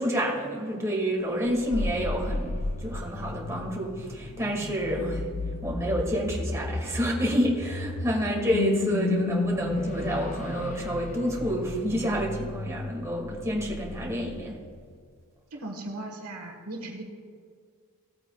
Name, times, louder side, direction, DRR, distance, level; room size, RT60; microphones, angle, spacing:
voice 1, 0.0-2.6 2.8-5.2 5.6-14.6, equal, 15° right, -2 dB, 1.9 m, -29 dB
sound 1, 1.5-15.0, left 2 dB, 35° left, 0.5 m, -33 dB
voice 2, 15.5-17.0, right 1 dB, 75° right, 2 dB, 1.3 m, -38 dB
16.0 x 8.7 x 2.3 m, 2.1 s
head